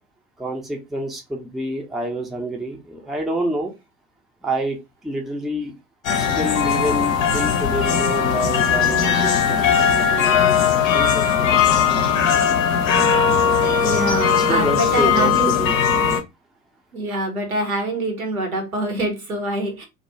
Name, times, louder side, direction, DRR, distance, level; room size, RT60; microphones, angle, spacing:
voice 1, 0.4-3.7 4.4-4.8 5.0-5.7 6.3-12.1 14.3-15.7, right 1 dB, ahead, 1 dB, 0.4 m, -28 dB
sound 1, 6.0-16.2, left 7 dB, 70° left, 0.6 m, -19 dB
voice 2, 13.7-15.5 16.9-19.8, right 1 dB, 85° right, 4 dB, 0.7 m, -25 dB
2.3 x 2.1 x 2.7 m, 0.24 s
figure-of-eight pair, 60°, 41 cm